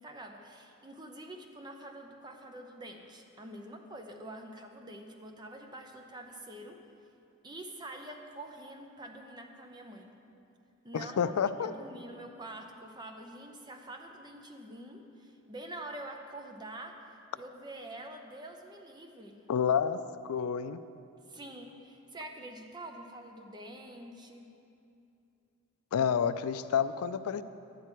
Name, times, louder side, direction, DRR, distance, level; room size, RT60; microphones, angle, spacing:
voice 1, 0.0-6.8 7.4-10.1 10.8-17.0 17.3-19.5 21.3-24.5, right 1 dB, 20° right, 3 dB, 0.7 m, -46 dB
voice 2, 10.9-11.7 19.5-20.0 20.3-20.8 25.9-27.4, left 7 dB, 85° left, 13 dB, 0.4 m, -29 dB
11.0 x 9.6 x 4.4 m, 2.6 s
head